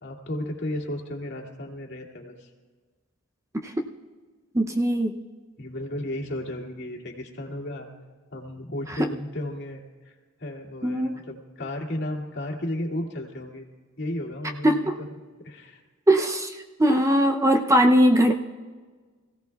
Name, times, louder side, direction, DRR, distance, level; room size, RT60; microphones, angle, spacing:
voice 1, 0.0-2.5 5.6-7.9 8.3-13.6 14.0-14.8 15.4-15.8, left 1 dB, 50° left, -2 dB, 2.3 m, -34 dB
voice 2, 4.5-5.2 8.9-9.1 10.8-11.2 14.6-14.8 16.1-18.3, equal, 15° right, 4 dB, 0.5 m, -20 dB
26.0 x 16.5 x 2.3 m, 1.4 s
head